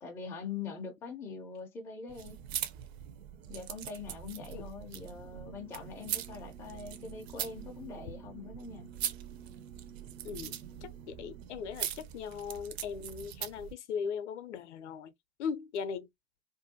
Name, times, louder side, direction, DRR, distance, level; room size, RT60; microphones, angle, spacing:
voice 1, 0.0-2.4 3.5-8.9, left 5 dB, 5° left, 0.4 m, -43 dB
sound 1, 2.1-13.7, right 11 dB, 50° right, 0.6 m, -42 dB
sound 2, 5.0-11.4, right 8 dB, 85° right, 0.9 m, -53 dB
voice 2, 10.8-15.1 15.4-16.1, left 6 dB, 60° left, 0.5 m, -38 dB
2.6 x 2.1 x 2.6 m
figure-of-eight pair, 100°, 40 cm